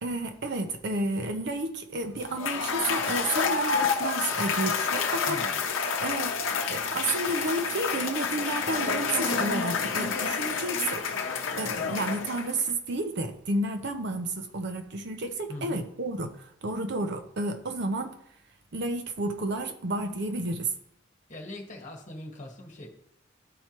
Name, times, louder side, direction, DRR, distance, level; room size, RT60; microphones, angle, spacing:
voice 1, 0.0-5.4 6.0-6.3 6.7-11.1 11.5-18.1 18.7-20.7, right 2 dB, 60° right, 6 dB, 0.7 m, -31 dB
Cheering / Applause / Crowd, 2.2-12.7, left 5 dB, 90° left, 0.7 m, -29 dB
voice 2, 5.3-5.6 15.5-15.8 21.3-22.9, left 1 dB, 40° left, 0 dB, 1.4 m, -41 dB
11.0 x 4.5 x 3.0 m, 0.72 s
head